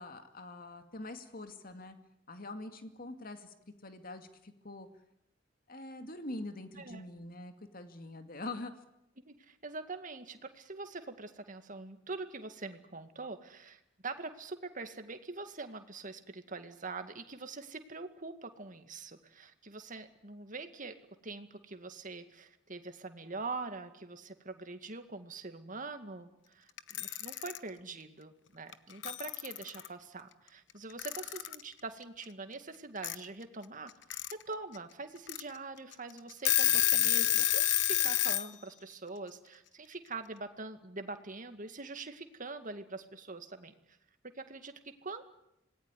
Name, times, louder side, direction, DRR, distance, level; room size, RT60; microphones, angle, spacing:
voice 1, 0.0-2.0 2.3-3.5 3.8-4.9 5.7-8.7, left 2 dB, 50° left, 7 dB, 2.3 m, -44 dB
voice 2, 9.3-20.9 21.2-44.0 44.2-45.2, right 3 dB, 45° right, 8 dB, 2.2 m, -44 dB
Alarm / Clock, 26.8-27.6 28.7-28.8 29.0-29.9 31.0-31.6 33.0-33.1 33.9-34.3 34.7-34.8 35.3-35.4 35.9-36.0 36.3-38.5, left 14 dB, 70° left, 1.1 m, -28 dB
26.5 x 19.5 x 9.9 m, 0.82 s
head